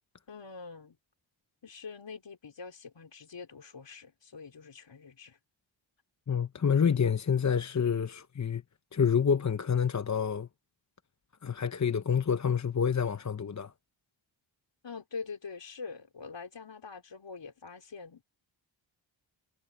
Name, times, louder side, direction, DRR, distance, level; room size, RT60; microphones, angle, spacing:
voice 1, 0.3-1.0 1.6-5.4 14.8-18.2, left 5 dB, 65° left, 4.1 m, -44 dB
voice 2, 6.3-8.6 8.9-10.5 11.4-13.7, left 7 dB, 35° left, 0.9 m, -28 dB
cardioid pair, 70°, 47 cm